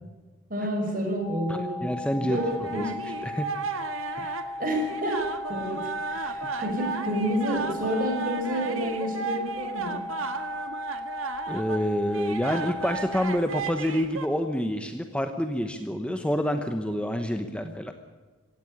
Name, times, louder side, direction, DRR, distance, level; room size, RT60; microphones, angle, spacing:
voice 1, 0.5-1.8 2.3-3.0 4.6-5.2 5.5-10.0 17.6-17.7, equal, 40° right, 2 dB, 5.9 m, -29 dB
sound 1, 1.2-13.3, left 1 dB, 40° left, 4.1 m, -37 dB
voice 2, 1.5-2.4 2.7-2.9 3.2-3.5 4.2-4.4 11.5-17.9, equal, 5° left, 6 dB, 1.0 m, -28 dB
sound 2, 2.3-14.3, right 4 dB, 85° right, 1.7 m, -35 dB
17.0 x 16.5 x 9.8 m, 1.4 s
head